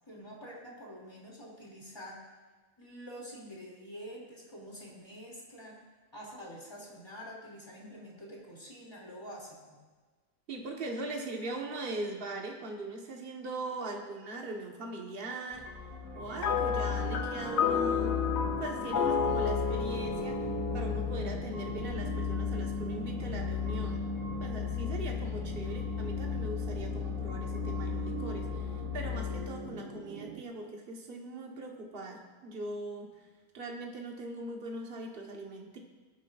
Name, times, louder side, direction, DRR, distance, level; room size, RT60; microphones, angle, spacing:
voice 1, 0.1-2.2 2.8-5.8 6.1-9.8, equal, 20° left, -4 dB, 2.9 m, -47 dB
voice 2, 10.5-15.6 16.1-18.2 18.6-20.4 20.7-24.0 24.4-33.1 33.5-35.8, right 2 dB, 40° right, 0 dB, 1.5 m, -40 dB
sound 1, 15.5-29.4, left 9 dB, 15° right, 3.7 m, -36 dB
sound 2, 16.3-30.4, right 2 dB, 70° right, 1.3 m, -40 dB
sound 3, 16.4-21.9, left 6 dB, 60° left, 0.8 m, -32 dB
20.5 x 9.5 x 2.5 m, 1.4 s
omnidirectional pair, 1.5 m